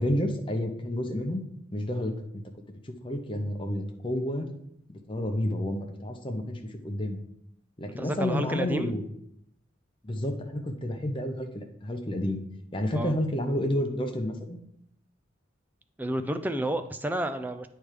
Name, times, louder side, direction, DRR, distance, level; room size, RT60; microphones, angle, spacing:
voice 1, 0.0-1.4 1.7-2.1 3.0-4.5 4.9-7.2 7.8-9.0 10.0-12.4 12.7-14.6, left 1 dB, 25° left, 3 dB, 0.7 m, -30 dB
voice 2, 8.0-8.9 12.9-13.2 16.0-17.7, right 1 dB, 10° right, 8 dB, 0.3 m, -30 dB
9.0 x 3.4 x 4.9 m, 0.73 s
head